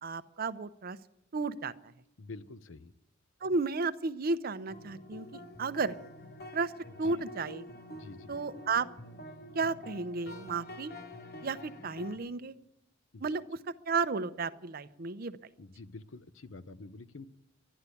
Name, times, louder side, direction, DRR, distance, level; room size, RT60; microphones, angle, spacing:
voice 1, 0.0-1.0 1.3-1.9 3.4-6.0 6.5-6.7 7.0-7.6 8.3-8.9 9.5-10.9 11.4-12.5 13.2-13.6 13.9-15.4, right 4 dB, 50° right, 13 dB, 0.6 m, -33 dB
voice 2, 2.2-2.9 7.0-7.1 7.9-8.3 13.1-13.2 15.6-17.3, left 3 dB, 80° left, 14 dB, 0.7 m, -47 dB
sound 1, 4.7-12.2, left 1 dB, 55° left, 1.0 m, -47 dB
12.0 x 11.5 x 8.3 m, 0.81 s
head